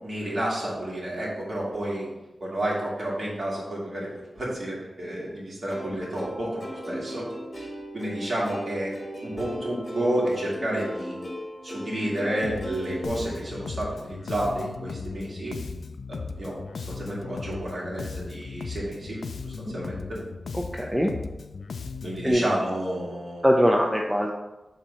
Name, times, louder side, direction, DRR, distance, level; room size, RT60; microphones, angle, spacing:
voice 1, 0.0-2.1 2.4-4.1 4.4-7.3 7.5-7.7 7.9-8.9 9.2-11.2 11.6-15.6 16.1-19.2 19.4-20.2 22.0-23.5, right 1 dB, 45° right, -5 dB, 2.2 m, -30 dB
Plucked string instrument, 5.7-13.1, equal, 20° left, 1.2 m, -37 dB
Bass guitar, 12.4-22.3, left 4 dB, 90° left, 0.4 m, -37 dB
voice 2, 20.5-21.1 22.2-22.4 23.4-24.3, equal, 5° right, 0 dB, 0.5 m, -22 dB
7.2 x 2.8 x 5.5 m, 1.0 s
wide cardioid pair, 130°, 0 cm